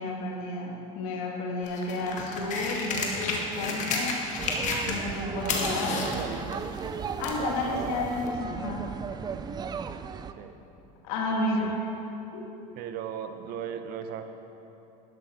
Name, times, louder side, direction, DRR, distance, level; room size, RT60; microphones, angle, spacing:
voice 1, 0.0-4.2 4.8-6.1 7.2-8.9 11.0-11.8 12.3-12.4, left 2 dB, 75° left, 0 dB, 1.9 m, -31 dB
sound 1, 1.6-5.2 5.4-7.5 8.3-8.4, left 4 dB, 45° left, 1.9 m, -31 dB
sound 2, 4.4-10.3, right 6 dB, 25° right, 0.4 m, -36 dB
voice 2, 5.4-6.7 7.2-7.9 10.4-10.6 11.3-11.7 12.8-14.2, right 8 dB, 60° right, 7 dB, 1.0 m, -38 dB
12.0 x 11.5 x 4.5 m, 2.9 s
supercardioid pair, 110°, 17 cm